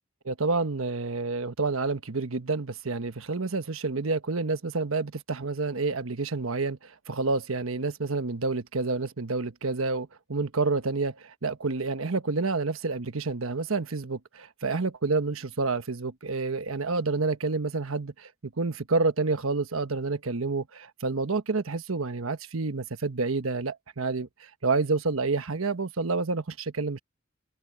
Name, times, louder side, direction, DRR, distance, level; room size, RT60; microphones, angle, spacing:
voice 1, 0.2-27.0, right 3 dB, 85° right, 1.2 m, -29 dB
head